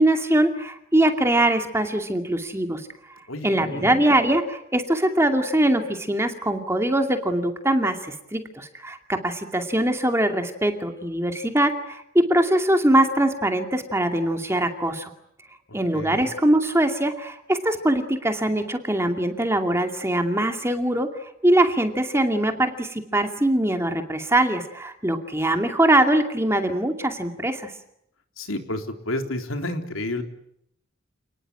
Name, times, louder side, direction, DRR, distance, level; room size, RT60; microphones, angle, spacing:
voice 1, 0.0-2.8 3.4-15.1 15.7-27.7, right 1 dB, 15° right, 5 dB, 2.4 m, -22 dB
voice 2, 3.3-4.0 15.9-16.2 28.4-30.2, left 1 dB, 85° left, 6 dB, 3.9 m, -30 dB
29.0 x 20.0 x 9.9 m, 0.75 s
head